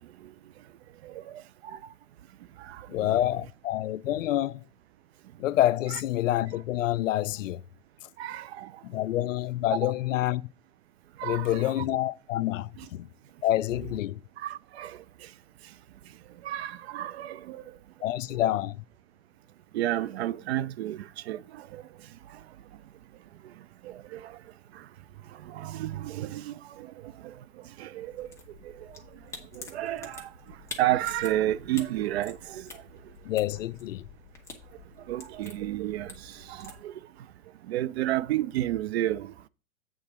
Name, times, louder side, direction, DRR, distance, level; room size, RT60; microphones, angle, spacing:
voice 1, 1.0-1.4 2.6-3.1 5.9-6.0 8.2-8.7 9.8-9.9 11.2-11.8 12.8-12.9 14.4-15.0 16.4-17.6 19.7-21.8 23.8-24.4 25.4-27.3 27.8-28.3 29.5-30.3 30.8-32.7 35.1-36.9 37.7-39.3, right 14 dB, 50° right, 0.5 m, -31 dB
voice 2, 2.9-4.6 5.4-7.6 8.8-10.4 11.2-13.1 13.4-14.2 18.0-18.8 33.2-34.1, left 14 dB, 65° left, 0.5 m, -27 dB
sound 1, 28.1-36.8, left 3 dB, 5° left, 1.3 m, -47 dB
8.2 x 3.9 x 6.0 m
hypercardioid pair, 130°, 41 cm